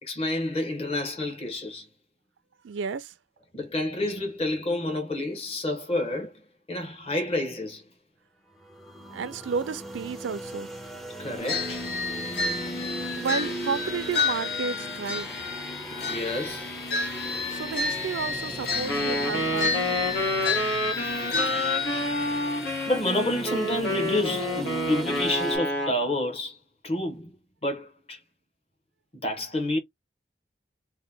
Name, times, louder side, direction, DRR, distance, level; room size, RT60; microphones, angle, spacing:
voice 1, 0.0-1.9 3.5-6.4 6.7-7.9 11.2-11.9 15.9-16.7 20.9-22.3 22.9-26.6 26.8-27.3 27.6-28.2 29.1-29.8, left 1 dB, 30° left, 0.9 m, -29 dB
voice 2, 2.6-3.1 9.1-10.7 13.2-15.3 17.5-20.3, right 5 dB, 90° right, 0.4 m, -32 dB
sound 1, 8.7-25.6, right 1 dB, ahead, 0.4 m, -38 dB
sound 2, 11.5-22.9, left 4 dB, 60° left, 0.8 m, -31 dB
Wind instrument woodwind instrument, 18.9-26.0, left 1 dB, 85° left, 1.1 m, -29 dB
2.8 x 2.1 x 3.3 m
head